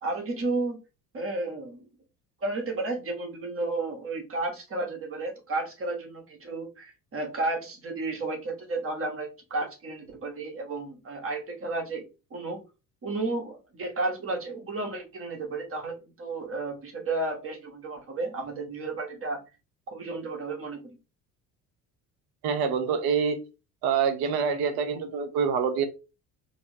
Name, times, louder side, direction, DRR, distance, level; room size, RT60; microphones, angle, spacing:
voice 1, 0.0-0.8 1.1-1.9 2.4-12.6 13.0-19.4 19.9-21.0, right 2 dB, 25° right, 2 dB, 1.2 m, -32 dB
voice 2, 22.4-23.4 23.8-25.9, right 6 dB, 50° right, 8 dB, 0.8 m, -26 dB
4.2 x 2.1 x 2.7 m, 0.30 s
figure-of-eight pair, 55°, 48 cm